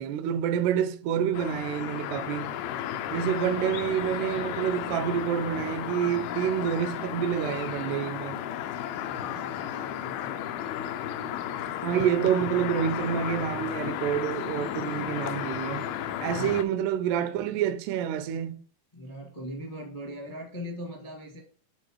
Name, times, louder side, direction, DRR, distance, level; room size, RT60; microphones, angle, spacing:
voice 1, 0.0-2.5 3.1-8.4 11.8-15.9 16.2-18.6, right 9 dB, 85° right, 2.6 m, -28 dB
Ambiente - Carretera cerca de bosque, 1.3-16.6, left 10 dB, 80° left, 2.2 m, -33 dB
voice 2, 8.9-10.7 16.3-16.6 18.9-21.4, equal, 35° left, 0.5 m, -41 dB
10.0 x 4.1 x 3.1 m
omnidirectional pair, 4.7 m